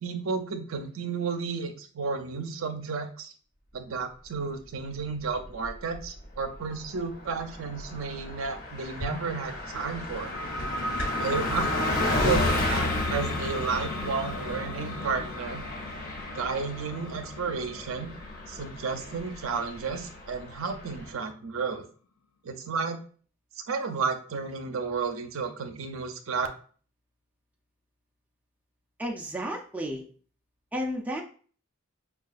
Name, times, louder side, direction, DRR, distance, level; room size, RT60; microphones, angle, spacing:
voice 1, 0.0-3.3 3.7-10.3 11.2-11.7 12.2-15.6 16.3-18.1 18.5-21.9 22.4-23.0 23.7-26.5, right 5 dB, 70° right, 6 dB, 0.5 m, -32 dB
Car passing by, 5.4-6.1 6.4-6.6 6.8-21.1, left 2 dB, 40° left, 0.8 m, -33 dB
sound 1, 8.9-11.4, equal, 60° left, 1.3 m, -40 dB
sound 2, 10.2-21.5, left 1 dB, 80° left, 0.4 m, -37 dB
voice 2, 29.0-30.0 30.7-31.2, equal, 5° right, 0 dB, 0.4 m, -32 dB
5.5 x 2.3 x 2.4 m, 0.43 s
head